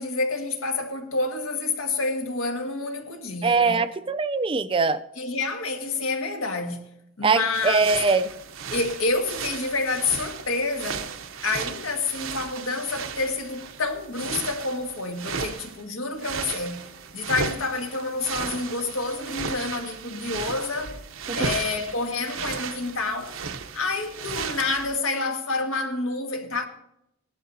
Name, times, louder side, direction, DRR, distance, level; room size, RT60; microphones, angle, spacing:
voice 1, 0.0-3.8 5.2-6.9 7.2-7.9 8.7-11.1 11.4-21.0 21.3-23.4 23.7-26.7, left 3 dB, 85° left, 1.7 m, -28 dB
voice 2, 3.4-5.0 7.2-8.3 21.3-21.5, right 4 dB, 25° right, 0.4 m, -22 dB
sound 1, 7.5-15.8 16.1-24.9, right 5 dB, 75° right, 0.7 m, -35 dB
17.5 x 11.0 x 2.7 m
head